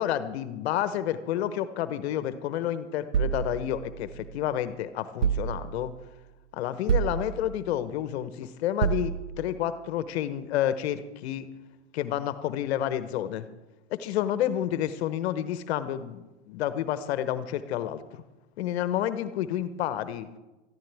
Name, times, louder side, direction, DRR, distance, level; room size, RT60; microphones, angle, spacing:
voice 1, 0.0-5.9 6.5-11.5 11.9-13.5 13.9-18.2 18.6-20.3, left 11 dB, 65° left, 12 dB, 1.0 m, -30 dB
sound 1, 3.1-4.5 5.2-6.1 6.9-7.8 8.8-9.6, right 8 dB, 80° right, 0.8 m, -29 dB
19.0 x 14.0 x 3.5 m, 1.1 s
hypercardioid pair, 105°, 35 cm